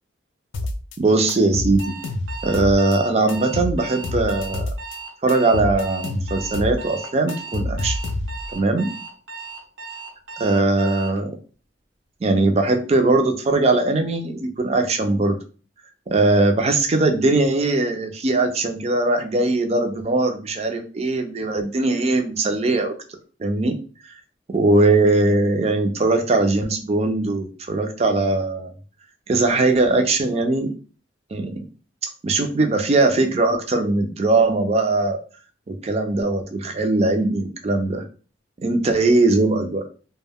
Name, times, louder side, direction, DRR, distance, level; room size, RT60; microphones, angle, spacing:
sound 1, 0.5-1.0 1.3-3.0 3.3-5.0 5.3-6.8 7.0-8.5, left 2 dB, 80° left, 0.4 m, -28 dB
voice 1, 1.0-2.0 2.4-4.7 5.2-8.0 8.5-8.9 10.4-11.3 12.2-15.4 16.1-23.0 23.4-23.8 24.5-28.7 29.3-30.7 31.3-31.6 32.2-35.2 35.7-38.0 38.6-39.8, right 2 dB, 35° right, 5 dB, 0.4 m, -20 dB
Alarm, 1.8-11.2, right 4 dB, 75° right, 0.7 m, -36 dB
2.1 x 2.1 x 3.4 m, 0.37 s
head